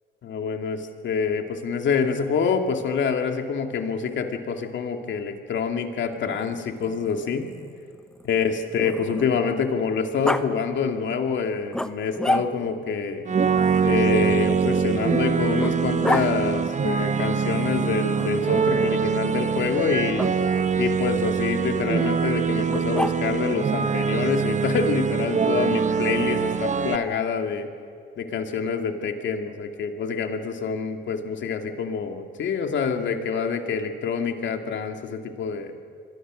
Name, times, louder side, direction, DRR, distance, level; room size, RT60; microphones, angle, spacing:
voice 1, 0.2-7.5 8.3-13.2 13.8-20.3 20.8-27.7 28.2-35.7, left 6 dB, 70° left, 5 dB, 2.5 m, -26 dB
Growling, 6.2-9.6 10.2-10.4 11.7-12.8 14.2-16.3 18.1-18.8 20.1-20.3 22.7-23.5, left 1 dB, 5° left, 1.1 m, -31 dB
sound 1, 13.3-27.0, right 6 dB, 35° right, 1.2 m, -23 dB
27.5 x 22.5 x 6.4 m, 2.3 s
cardioid pair, 90°, 20 cm